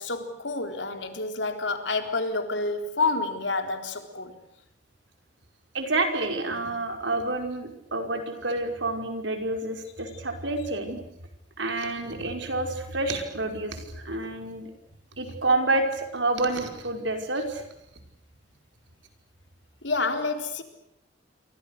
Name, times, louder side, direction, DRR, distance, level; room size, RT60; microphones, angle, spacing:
voice 1, 0.0-4.4 19.8-20.6, left 3 dB, 75° left, 3.9 m, -28 dB
voice 2, 5.7-11.0 11.6-14.7 15.2-17.6, right 2 dB, 80° right, 5.4 m, -28 dB
29.0 x 24.5 x 6.7 m
head